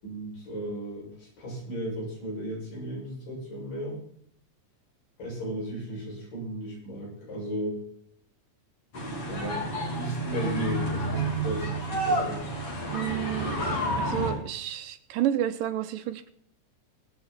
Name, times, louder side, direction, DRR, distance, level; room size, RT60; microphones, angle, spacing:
voice 1, 0.0-4.0 5.2-7.8 9.3-12.4, right 1 dB, 75° left, -4 dB, 9.1 m, -35 dB
sound 1, 8.9-14.3, right 1 dB, 45° left, 4.5 m, -30 dB
voice 2, 12.9-13.7 14.0-16.3, right 11 dB, 85° right, 10 dB, 2.7 m, -30 dB
24.0 x 8.6 x 4.5 m, 0.64 s
omnidirectional pair, 3.8 m